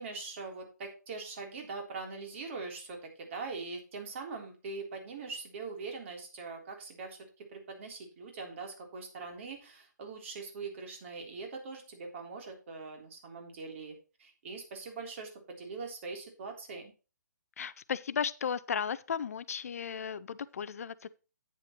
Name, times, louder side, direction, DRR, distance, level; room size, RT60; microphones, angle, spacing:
voice 1, 0.0-16.9, right 4 dB, 40° right, 3.5 m, -42 dB
voice 2, 17.6-21.1, left 7 dB, 50° left, 0.6 m, -35 dB
10.5 x 9.2 x 3.1 m
figure-of-eight pair, 135°, 10 cm